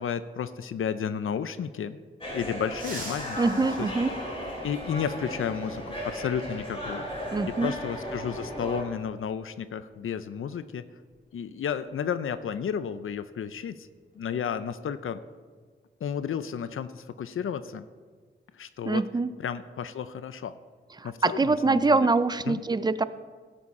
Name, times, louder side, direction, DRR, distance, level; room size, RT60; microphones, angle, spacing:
voice 1, 0.0-2.0 2.3-3.7 4.6-7.1 7.5-10.8 11.3-13.9 14.2-15.2 16.0-17.8 18.5-19.0 19.4-20.5 21.0-22.1 22.4-22.6, left 7 dB, 80° left, 13 dB, 0.5 m, -32 dB
sound 1, 2.2-8.8, equal, 25° left, 3.3 m, -36 dB
sound 2, 2.7-5.1 6.7-6.8 8.1-8.2 9.8-10.0 10.3-10.5 11.0-13.2 13.5-13.7 14.1-14.6, right 2 dB, 40° right, 2.0 m, -46 dB
voice 2, 3.4-4.1 7.3-7.7 18.8-19.3 21.0-23.0, right 3 dB, 20° right, 14 dB, 0.3 m, -24 dB
17.0 x 7.2 x 4.2 m, 1.5 s
wide cardioid pair, 155°, 21 cm